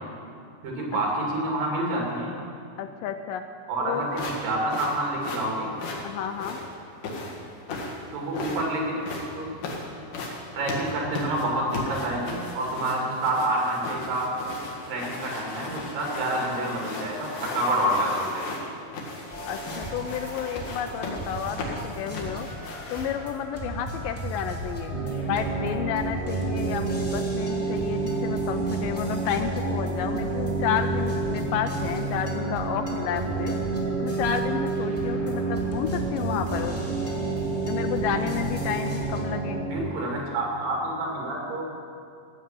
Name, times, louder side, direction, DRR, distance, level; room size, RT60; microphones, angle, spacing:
voice 1, 0.6-2.3 3.7-5.7 8.1-9.5 10.5-14.3 14.9-18.5 39.7-41.6, right 1 dB, 70° right, -1 dB, 4.2 m, -28 dB
voice 2, 2.8-3.4 3.8-4.2 6.0-6.6 19.5-22.5 22.9-25.0 25.2-33.6 34.0-36.8 37.6-39.6, left 9 dB, 80° left, 7 dB, 2.1 m, -31 dB
sound 1, 4.1-23.3, left 3 dB, 65° left, 3.2 m, -36 dB
sound 2, 19.3-39.2, right 1 dB, 5° left, 1.8 m, -36 dB
sound 3, 24.9-39.7, right 3 dB, 40° right, 4.4 m, -29 dB
15.5 x 7.3 x 8.8 m, 2.4 s
omnidirectional pair, 4.2 m